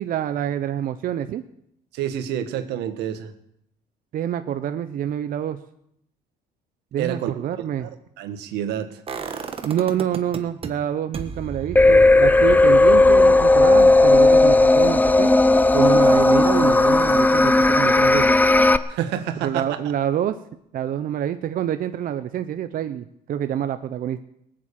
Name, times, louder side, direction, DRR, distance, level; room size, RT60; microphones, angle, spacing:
voice 1, 0.0-1.4 4.1-5.6 6.9-7.9 9.6-15.3 15.7-18.4 19.4-20.4 20.7-24.2, right 10 dB, 55° right, 10 dB, 0.8 m, -26 dB
voice 2, 1.9-3.3 7.0-7.3 7.8-7.9 8.2-9.0 18.9-19.8, right 10 dB, 85° right, 9 dB, 1.5 m, -28 dB
sound 1, 9.1-10.7 11.1-17.0 17.3-17.4, right 5 dB, 35° right, 1.5 m, -36 dB
sound 2, 11.8-18.8, left 2 dB, 10° left, 0.6 m, -15 dB
18.5 x 7.7 x 8.6 m, 0.76 s
cardioid pair, 110°, 17 cm